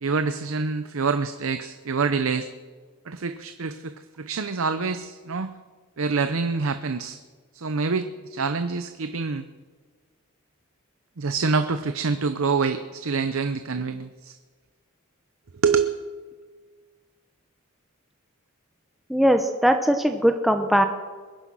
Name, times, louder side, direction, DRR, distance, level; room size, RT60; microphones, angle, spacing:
voice 1, 0.0-2.5 3.1-5.5 6.0-7.2 7.5-9.5 11.2-14.3 15.6-16.0, right 4 dB, 65° right, 10 dB, 0.7 m, -26 dB
voice 2, 19.1-20.8, equal, ahead, 5 dB, 0.8 m, -20 dB
21.5 x 10.0 x 6.2 m, 1.5 s
head